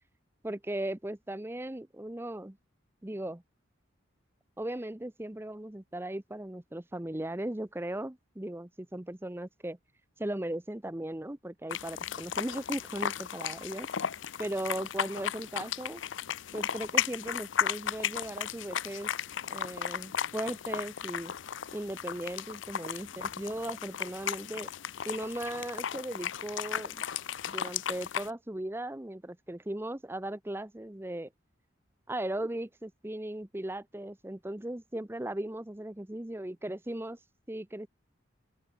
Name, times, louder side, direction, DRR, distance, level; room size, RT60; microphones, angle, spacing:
voice 1, 0.4-2.6 3.0-3.4 4.6-9.8 10.2-13.9 14.4-16.0 16.5-19.1 19.5-21.3 21.7-24.7 25.0-27.0 27.5-31.3 32.1-37.2 37.5-37.9, right 1 dB, 10° right, 0.7 m, -37 dB
sound 1, 11.7-28.3, left 8 dB, 70° left, 0.6 m, -35 dB
open air
head